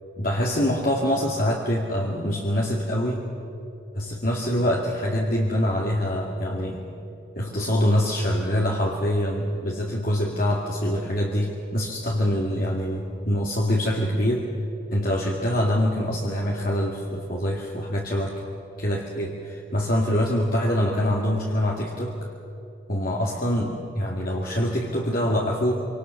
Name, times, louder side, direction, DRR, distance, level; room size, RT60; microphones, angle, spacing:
voice 1, 0.2-3.3 3.9-6.8 7.3-14.5 14.9-18.4 18.8-22.2 22.9-25.7, equal, 45° left, -2 dB, 2.5 m, -25 dB
27.0 x 26.0 x 6.7 m, 2.8 s
head